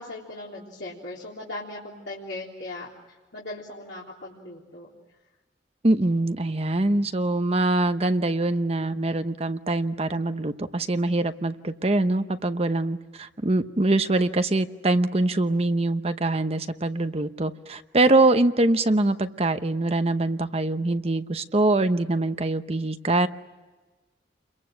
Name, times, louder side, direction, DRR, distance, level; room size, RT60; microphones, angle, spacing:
voice 1, 0.0-4.9, left 2 dB, 80° left, -5 dB, 3.7 m, -38 dB
voice 2, 5.8-23.3, right 2 dB, 35° right, 9 dB, 0.9 m, -23 dB
29.0 x 23.0 x 7.7 m, 1.2 s
head